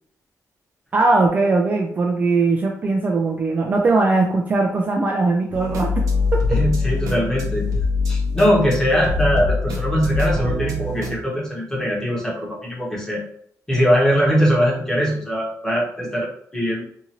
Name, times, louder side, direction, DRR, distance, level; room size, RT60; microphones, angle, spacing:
voice 1, 0.9-6.0 6.3-6.4, right 3 dB, 25° right, 0 dB, 0.3 m, -19 dB
sound 1, 5.5-11.2, left 3 dB, 60° right, 0.6 m, -23 dB
voice 2, 6.5-7.7 8.1-13.2 13.7-16.3 16.5-16.8, equal, 10° left, -4 dB, 1.0 m, -21 dB
2.7 x 2.5 x 2.9 m, 0.67 s
wide cardioid pair, 170°, 6 cm